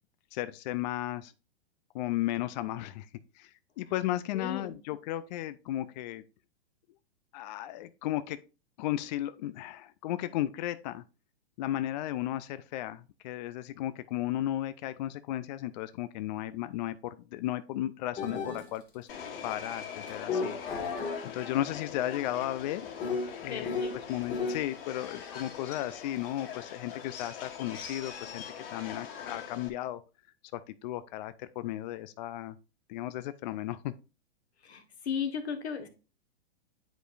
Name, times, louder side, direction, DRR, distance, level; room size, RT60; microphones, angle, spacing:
voice 1, 0.3-1.3 1.9-3.1 3.4-6.2 7.3-8.4 8.8-11.0 11.6-19.1 19.4-20.6 20.9-22.9 23.4-23.7 24.1-30.0 30.5-32.6 32.9-33.9, left 14 dB, 45° left, 0.4 m, -35 dB
voice 2, 4.3-4.7 23.4-23.9 34.6-35.9, left 7 dB, 85° left, 1.4 m, -35 dB
sound 1, 18.2-18.7 20.1-24.7, left 4 dB, 25° left, 1.9 m, -35 dB
Subway metro underground, 19.1-29.7, left 7 dB, 60° left, 1.8 m, -43 dB
9.0 x 5.0 x 2.5 m
hypercardioid pair, 130°, 32 cm